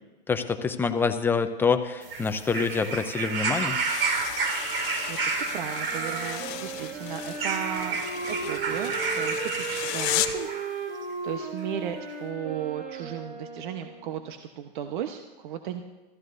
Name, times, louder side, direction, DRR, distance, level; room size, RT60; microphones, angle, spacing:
voice 1, 0.3-3.8, left 5 dB, 5° left, 8 dB, 0.7 m, -26 dB
sound 1, 2.0-10.7 11.6-11.7, right 5 dB, 75° right, 2.8 m, -31 dB
sound 2, 3.7-10.5, left 15 dB, 35° left, 0.8 m, -35 dB
voice 2, 5.5-8.0 8.3-11.0 11.2-15.8, right 9 dB, 55° right, 6 dB, 1.1 m, -35 dB
Wind instrument woodwind instrument, 5.9-14.2, right 4 dB, 40° right, 5.4 m, -36 dB
27.0 x 14.5 x 2.7 m, 1.2 s
hypercardioid pair, 130°, 29 cm